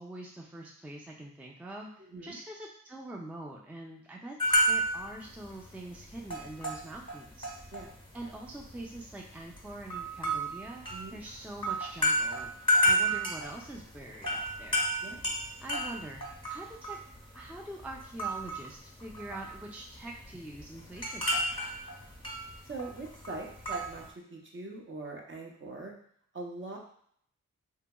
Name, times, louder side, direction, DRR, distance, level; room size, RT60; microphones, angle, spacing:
voice 1, 0.0-4.4 4.7-7.5 8.1-10.9 11.1-14.9 15.6-17.0 17.3-21.8, right 1 dB, 5° right, -1 dB, 0.4 m, -44 dB
voice 2, 2.0-2.4 7.7-7.9 10.9-11.2 15.0-15.3 22.6-25.9 26.3-26.8, right 3 dB, 40° right, 0 dB, 0.7 m, -42 dB
sound 1, 4.4-5.1 5.4-5.7 5.9-7.8 8.1-9.0 9.5-17.6 17.8-18.7 19.0-19.7 19.9-24.1, equal, 15° left, 1.0 m, -30 dB
2.8 x 2.7 x 2.2 m, 0.64 s
cardioid pair, 55°, 33 cm